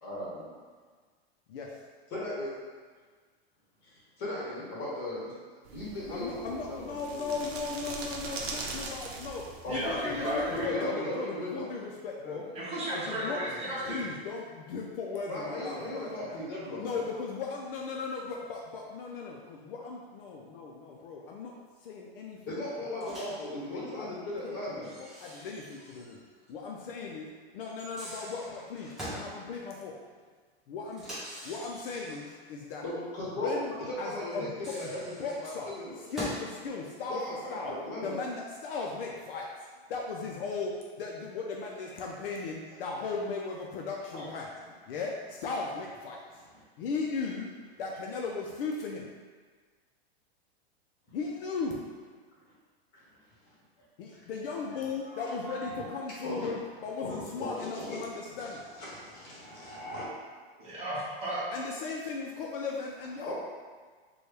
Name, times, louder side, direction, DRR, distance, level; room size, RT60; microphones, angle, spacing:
voice 1, 0.0-0.5 2.1-2.5 3.8-5.3 5.7-7.3 9.6-9.9 10.2-11.7 12.2-12.4 15.3-17.0 22.5-24.9 32.8-36.0 37.1-38.2 42.2-42.3 44.1-44.3 52.5-52.6 52.9-53.0 54.8-56.5 57.0-58.1 58.6-60.1 63.3-63.4, left 1 dB, 30° left, -6 dB, 1.4 m, -37 dB
sound 1, 5.7-10.7, right 3 dB, 70° right, 0.7 m, -41 dB
voice 2, 6.1-12.5 12.9-13.4 13.9-16.4 16.8-21.5 21.8-22.6 22.9-23.1 23.5-26.2 26.5-27.3 27.5-30.0 30.7-31.0 31.4-32.8 33.4-33.7 34.0-34.5 35.2-35.7 36.0-37.2 37.5-37.8 38.0-44.5 44.9-46.2 46.8-47.5 47.8-49.1 51.1-51.8 54.0-58.6 61.5-63.3, left 4 dB, 60° left, -1 dB, 0.5 m, -37 dB
voice 3, 9.7-10.9 12.5-14.0 60.6-61.4, right 1 dB, 20° right, -9 dB, 1.0 m, -34 dB
Microwave oven, 23.0-23.5 24.8-26.2 26.5-26.6 27.7-29.3 30.9-32.3 34.3-36.5, equal, ahead, 0.3 m, -43 dB
4.2 x 2.3 x 3.2 m, 1.5 s
supercardioid pair, 150°, 32 cm